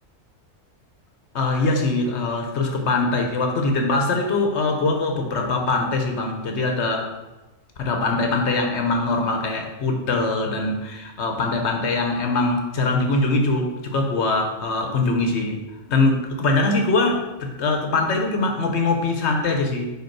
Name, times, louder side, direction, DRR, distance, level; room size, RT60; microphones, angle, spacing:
voice 1, 1.3-7.1 7.8-15.6 15.9-19.9, left 3 dB, 65° left, 3 dB, 1.0 m, -22 dB
5.1 x 4.9 x 4.6 m, 1.1 s
omnidirectional pair, 1.3 m